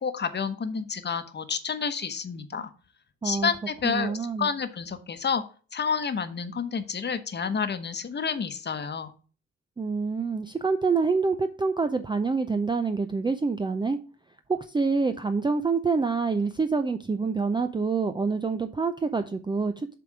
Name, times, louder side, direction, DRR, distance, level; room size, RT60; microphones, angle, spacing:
voice 1, 0.0-2.7 3.2-5.4 5.7-9.1, left 6 dB, 35° left, 10 dB, 1.0 m, -29 dB
voice 2, 3.8-4.5 9.8-14.0 14.5-19.9, right 4 dB, 15° right, 8 dB, 0.5 m, -26 dB
7.6 x 3.5 x 6.0 m, 0.38 s
cardioid pair, 90°, 30 cm